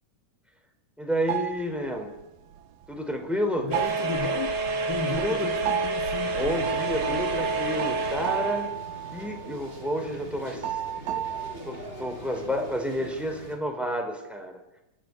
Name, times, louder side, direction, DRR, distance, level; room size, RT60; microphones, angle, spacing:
voice 1, 1.0-2.1 2.9-3.7 5.1-5.5 6.3-8.7 9.1-10.8 11.6-14.6, equal, ahead, 4 dB, 3.8 m, -30 dB
sound 1, 1.3-2.2 2.5-3.4 3.7-4.9 5.6-9.9 10.2-10.3 10.6-11.5, right 12 dB, 85° right, 2.8 m, -33 dB
voice 2, 3.6-6.4, left 5 dB, 55° left, 5 dB, 1.2 m, -34 dB
sound 2, 3.7-8.7, right 3 dB, 55° right, 3.9 m, -29 dB
sound 3, 6.2-13.6, right 1 dB, 15° right, 5.1 m, -42 dB
29.0 x 13.5 x 9.9 m, 0.96 s
omnidirectional pair, 3.8 m